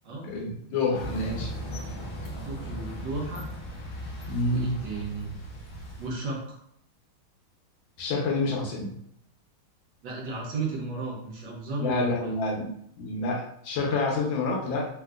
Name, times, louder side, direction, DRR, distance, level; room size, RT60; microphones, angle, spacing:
voice 1, 0.2-1.5 4.3-4.7 8.0-8.9 11.8-12.7 13.0-14.9, left 3 dB, 75° left, -1 dB, 1.5 m, -28 dB
sound 1, 0.9-6.1, equal, 60° left, 1.0 m, -37 dB
voice 2, 2.4-3.5 4.4-5.3 6.0-6.6 10.0-12.3, right 3 dB, 70° right, -2 dB, 1.3 m, -34 dB
3.6 x 2.5 x 2.3 m, 0.69 s
omnidirectional pair, 2.2 m